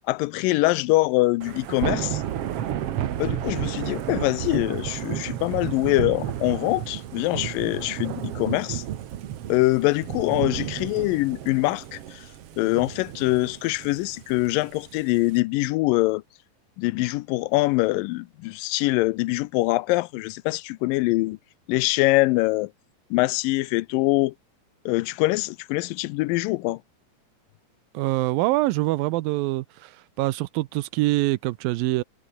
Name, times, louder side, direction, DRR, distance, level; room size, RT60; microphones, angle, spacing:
voice 1, 0.1-2.2 3.2-8.8 9.5-12.3 12.6-16.2 16.8-21.4 21.7-22.7 23.1-24.3 24.9-26.8, left 20 dB, 85° left, 2.2 m, -24 dB
Thunder / Rain, 1.4-15.4, right 11 dB, 60° right, 1.7 m, -32 dB
voice 2, 27.9-29.9 30.2-32.0, right 19 dB, 85° right, 2.5 m, -24 dB
omnidirectional pair, 4.0 m